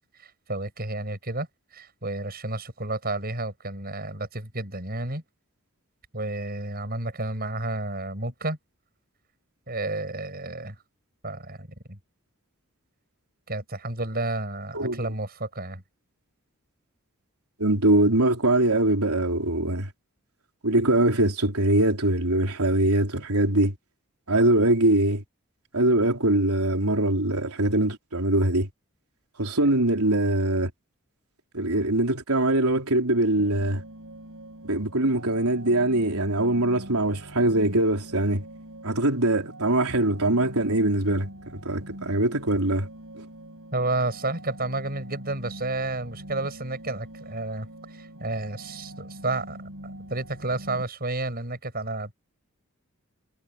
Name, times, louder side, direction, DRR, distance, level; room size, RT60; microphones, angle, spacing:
voice 1, 0.0-1.5 1.7-5.2 6.1-8.6 9.7-10.7 11.2-12.0 13.5-15.8 43.7-49.6 50.1-52.1, right 2 dB, 45° right, 7.5 m, -31 dB
voice 2, 17.6-19.9 20.6-23.7 24.3-25.2 25.7-28.7 29.4-30.7 31.5-33.8 34.6-38.4 38.8-42.9 43.2-43.3, right 1 dB, 85° right, 3.9 m, -22 dB
sound 1, 33.4-50.8, right 1 dB, 65° right, 8.0 m, -43 dB
head